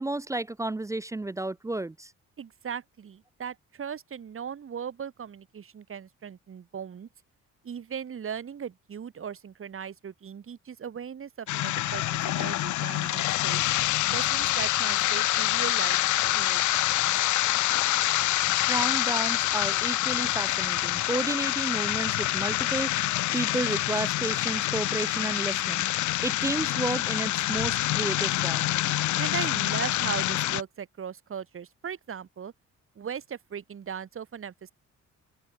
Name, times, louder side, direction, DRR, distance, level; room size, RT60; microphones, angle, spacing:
voice 1, 0.0-2.1 18.6-28.7, right 2 dB, 10° right, 0.4 m, -32 dB
voice 2, 2.4-7.1 7.6-13.6 14.1-16.0 16.3-17.0 29.2-32.5 33.0-34.7, right 7 dB, 45° right, 2.2 m, -38 dB
sound 1, 11.5-30.6, left 15 dB, 75° left, 0.8 m, -26 dB
open air
cardioid pair, 90°, 30 cm